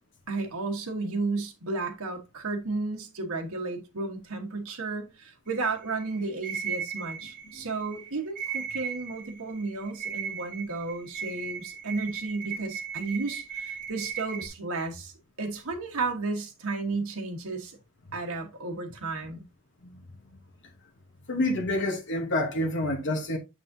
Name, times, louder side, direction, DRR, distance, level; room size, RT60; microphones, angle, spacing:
voice 1, 0.3-15.1 15.4-17.8 18.1-19.4, right 3 dB, 70° right, 1.3 m, -33 dB
sound 1, 5.5-14.5, right 7 dB, 40° right, 1.1 m, -37 dB
voice 2, 21.3-23.4, left 1 dB, 55° left, 1.0 m, -28 dB
7.5 x 6.2 x 2.7 m
head